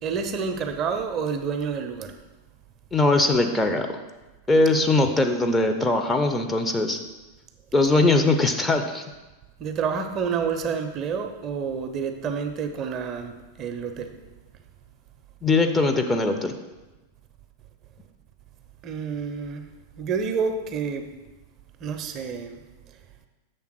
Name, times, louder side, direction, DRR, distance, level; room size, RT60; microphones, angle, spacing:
voice 1, 0.0-2.1 7.8-7.9 9.6-14.1 18.8-19.6 20.0-21.1 21.8-22.6, right 6 dB, 35° right, 7 dB, 0.6 m, -29 dB
voice 2, 2.9-3.9 4.5-7.0 7.7-9.0 15.4-16.5, left 2 dB, 10° left, 5 dB, 0.5 m, -21 dB
6.5 x 3.5 x 6.2 m, 1.1 s
figure-of-eight pair, 90°, 0 cm